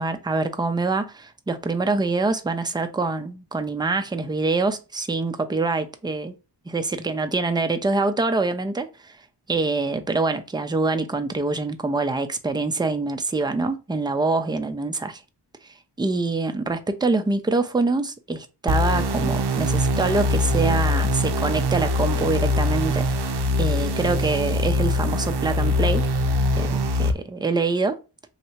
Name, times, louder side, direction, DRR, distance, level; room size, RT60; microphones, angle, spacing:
voice 1, 0.0-6.3 6.7-9.1 9.5-15.2 15.6-23.1 23.6-26.1 26.6-28.0, right 3 dB, 10° right, 0.4 m, -25 dB
sound 1, 18.7-27.1, left 1 dB, 65° right, 0.5 m, -23 dB
3.2 x 2.7 x 3.0 m
wide cardioid pair, 65°, 43 cm